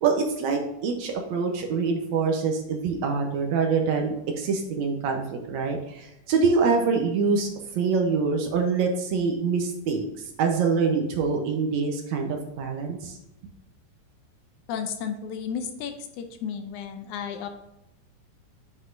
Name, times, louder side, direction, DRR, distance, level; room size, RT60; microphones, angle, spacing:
voice 1, 0.0-7.5 7.8-13.2, right 5 dB, 70° right, 2 dB, 2.0 m, -25 dB
voice 2, 14.7-17.5, left 7 dB, 75° left, 7 dB, 2.0 m, -33 dB
9.7 x 6.0 x 2.6 m, 0.91 s
omnidirectional pair, 3.7 m